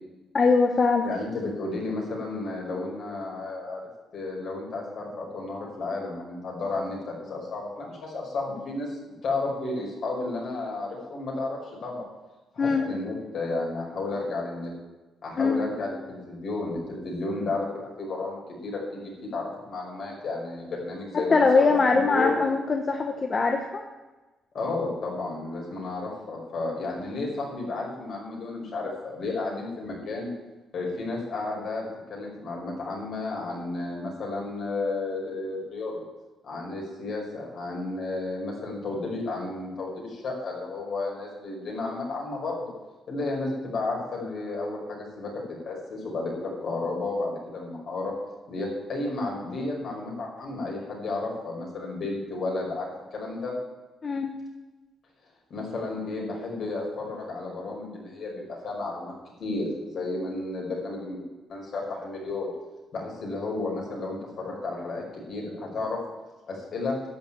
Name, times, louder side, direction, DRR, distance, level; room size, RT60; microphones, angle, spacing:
voice 1, 0.3-1.0 12.6-12.8 15.4-15.6 21.3-23.8 54.0-54.3, left 4 dB, 40° left, 4 dB, 1.2 m, -22 dB
voice 2, 1.0-3.8 4.1-12.0 12.5-14.7 15.2-22.4 24.5-30.3 30.7-36.0 36.4-42.7 43.1-45.3 45.7-48.1 48.5-53.5 55.5-59.1 59.4-61.2 61.5-62.5 62.9-66.0 66.5-67.0, left 3 dB, 60° left, -2 dB, 5.6 m, -32 dB
11.5 x 7.4 x 8.9 m, 1.2 s
cardioid pair, 90°, 0 cm